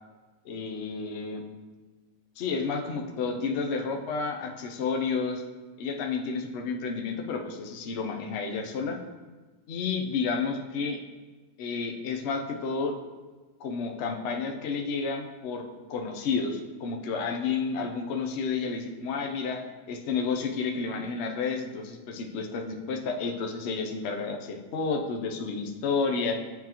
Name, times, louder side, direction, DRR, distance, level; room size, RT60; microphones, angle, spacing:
voice 1, 0.4-1.4 2.4-5.4 5.8-9.0 9.7-11.0 11.6-12.9 13.6-15.6 15.9-26.4, left 4 dB, 60° left, 3 dB, 0.7 m, -31 dB
8.9 x 3.7 x 2.9 m, 1.3 s
omnidirectional pair, 1.7 m